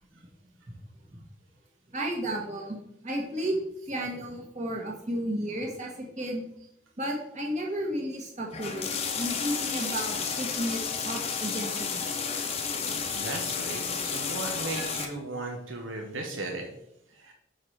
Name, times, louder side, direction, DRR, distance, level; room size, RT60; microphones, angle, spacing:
voice 1, 1.9-2.8 3.0-3.6 3.9-6.4 7.0-12.1, right 1 dB, 35° right, 0 dB, 1.4 m, -33 dB
sound 1, 8.5-15.1, left 6 dB, 30° left, 0.7 m, -32 dB
voice 2, 12.7-16.7 17.1-17.3, right 2 dB, 90° right, 2 dB, 1.0 m, -36 dB
6.6 x 4.2 x 4.6 m, 0.78 s
head